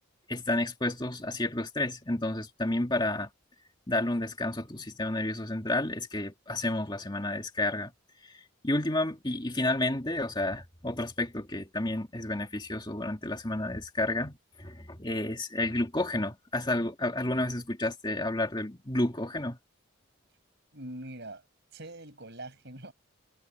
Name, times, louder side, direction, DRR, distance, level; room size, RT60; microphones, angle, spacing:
voice 1, 0.3-3.3 3.9-7.9 8.3-19.6, left 1 dB, 20° left, 2.2 m, -31 dB
voice 2, 20.7-21.4 21.7-22.9, right 1 dB, 55° right, 6.4 m, -43 dB
head